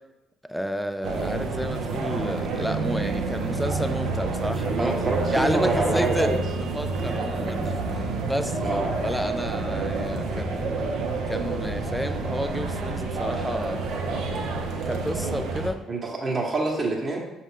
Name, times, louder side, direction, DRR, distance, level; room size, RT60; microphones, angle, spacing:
voice 1, 0.5-4.9 5.3-6.3 6.7-10.7 11.3-13.8 14.9-15.8, equal, ahead, 9 dB, 0.4 m, -31 dB
sound 1, 1.0-15.7, right 3 dB, 65° right, 0.6 m, -28 dB
voice 2, 4.8-6.4 8.6-8.9 15.9-17.2, right 2 dB, 25° right, -2 dB, 1.0 m, -26 dB
6.2 x 2.4 x 3.5 m, 1.1 s
hypercardioid pair, 50°, 0 cm